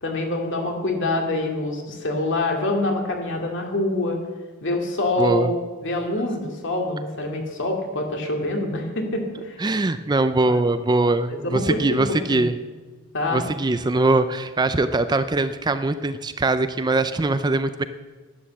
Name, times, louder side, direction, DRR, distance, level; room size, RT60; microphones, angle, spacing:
voice 1, 0.0-4.2 4.6-9.6 10.4-10.6 11.3-12.0 12.3-12.4 13.1-13.4, left 2 dB, 60° left, 2 dB, 2.4 m, -25 dB
voice 2, 5.2-5.5 9.6-12.6 13.3-17.8, right 2 dB, 20° right, 11 dB, 0.5 m, -22 dB
11.5 x 10.5 x 7.6 m, 1.4 s
head